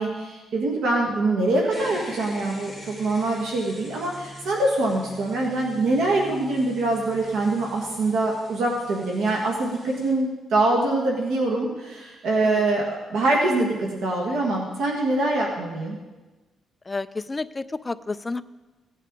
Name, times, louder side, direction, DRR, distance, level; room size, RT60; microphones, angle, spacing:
voice 1, 0.0-12.8 13.1-16.0, right 2 dB, 75° right, -1 dB, 1.6 m, -24 dB
sound 1, 1.7-10.1, left 1 dB, 10° right, 3.1 m, -43 dB
voice 2, 16.9-18.4, left 3 dB, 15° left, 12 dB, 0.3 m, -30 dB
17.0 x 9.2 x 3.7 m, 1.2 s
cardioid pair, 165°, 0 cm